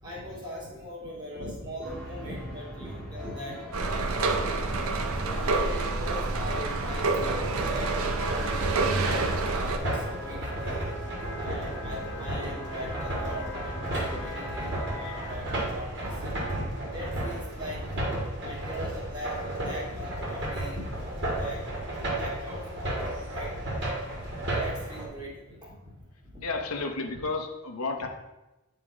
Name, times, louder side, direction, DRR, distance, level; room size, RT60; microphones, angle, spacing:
voice 1, 0.0-4.7 5.2-10.9 11.4-13.8 14.0-21.6 22.1-23.6 24.5-25.9 26.3-26.4 27.0-27.3 28.0-28.1, left 1 dB, 20° right, -5 dB, 1.9 m, -40 dB
sound 1, 1.8-15.3, equal, 5° left, 1.2 m, -40 dB
sound 2, 3.7-9.8, right 3 dB, 70° right, 0.6 m, -28 dB
sound 3, 9.0-25.1, right 1 dB, 50° right, 1.9 m, -33 dB
voice 2, 26.4-28.1, left 3 dB, 80° left, 4 dB, 0.8 m, -32 dB
9.1 x 3.7 x 4.8 m, 1.0 s
head